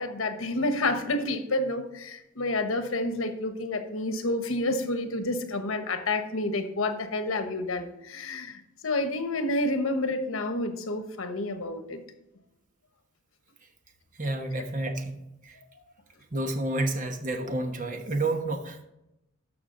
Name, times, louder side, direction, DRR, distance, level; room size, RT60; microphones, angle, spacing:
voice 1, 0.0-12.0, left 2 dB, 85° left, 8 dB, 1.1 m, -29 dB
voice 2, 14.2-15.2 15.4-15.5 16.3-18.8, right 2 dB, 40° right, 5 dB, 1.1 m, -30 dB
12.5 x 5.9 x 3.8 m, 0.88 s
head